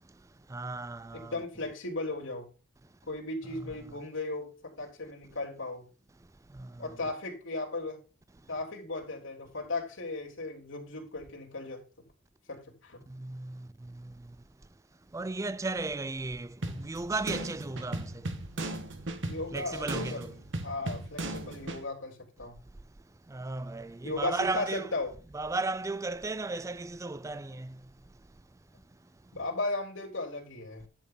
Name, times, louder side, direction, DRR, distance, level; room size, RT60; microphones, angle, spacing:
voice 1, 0.5-1.4 3.5-3.7 6.6-6.7 13.1-13.6 15.1-18.1 19.5-20.3 23.3-24.9 25.3-27.7, right 3 dB, 15° right, 0.4 m, -35 dB
voice 2, 1.1-2.5 3.1-5.8 6.8-8.0 8.5-11.8 12.5-13.0 19.2-20.2 20.6-22.6 24.0-25.1 29.3-30.8, left 2 dB, 80° left, 3.4 m, -36 dB
sound 1, 16.6-21.8, right 2 dB, 65° right, 1.3 m, -37 dB
11.0 x 6.1 x 3.8 m
head